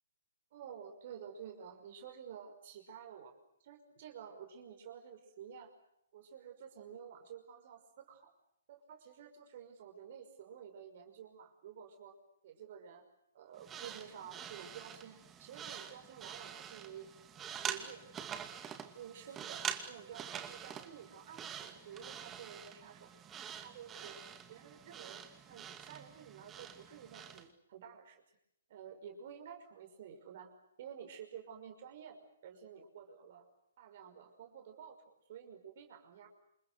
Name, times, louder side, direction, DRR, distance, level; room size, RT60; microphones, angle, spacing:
voice 1, 0.5-5.7 6.1-8.3 8.7-12.1 12.4-13.0 13.3-17.1 17.3-18.0 18.3-18.5 18.8-19.6 19.9-23.1 23.6-24.2 24.5-28.2 28.7-30.5 30.8-33.5 33.8-36.3, right 8 dB, 45° right, 5 dB, 5.8 m, -51 dB
sound 1, 13.6-27.5, right 8 dB, 15° right, 2.4 m, -46 dB
28.5 x 28.0 x 6.7 m, 0.75 s
figure-of-eight pair, 125°, 0 cm